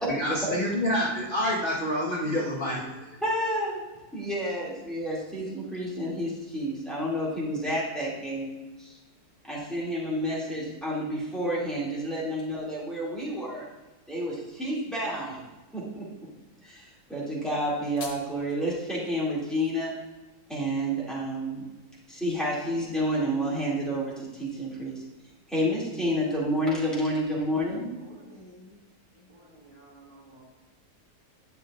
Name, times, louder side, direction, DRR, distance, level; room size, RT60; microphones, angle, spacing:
voice 1, 0.2-2.8, equal, 35° left, -8 dB, 1.4 m, -27 dB
voice 2, 3.2-3.8 4.1-9.0 9.5-13.7 14.1-15.4 15.7-16.1 16.6-19.9 20.5-21.7 22.1-25.0 25.5-27.9, equal, ahead, -8 dB, 2.2 m, -30 dB
sound 1, 17.5-18.5, left 4 dB, 60° left, 1.3 m, -44 dB
voice 3, 27.6-28.8 29.1-30.4, right 1 dB, 20° right, -7 dB, 2.4 m, -52 dB
10.0 x 6.6 x 2.4 m, 1.1 s
omnidirectional pair, 1.6 m